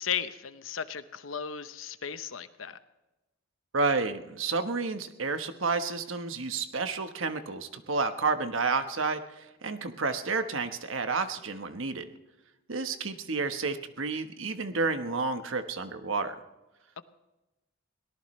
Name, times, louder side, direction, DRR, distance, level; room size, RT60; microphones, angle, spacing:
voice 1, 0.0-2.8, left 8 dB, 85° left, 11 dB, 0.9 m, -35 dB
voice 2, 3.7-12.1 12.7-16.3, right 4 dB, 80° right, 8 dB, 1.2 m, -30 dB
23.0 x 18.0 x 3.2 m, 1.0 s
head